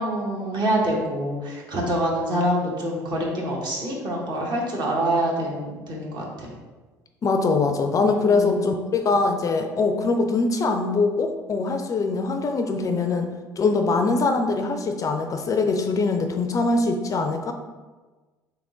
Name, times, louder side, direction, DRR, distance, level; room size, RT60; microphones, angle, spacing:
voice 1, 0.0-6.5 8.1-8.7, right 1 dB, 45° right, -2 dB, 1.2 m, -26 dB
voice 2, 7.2-13.3 13.6-17.5, left 3 dB, 35° left, 6 dB, 0.4 m, -22 dB
3.5 x 3.1 x 3.8 m, 1.3 s
figure-of-eight pair, 60°, 10 cm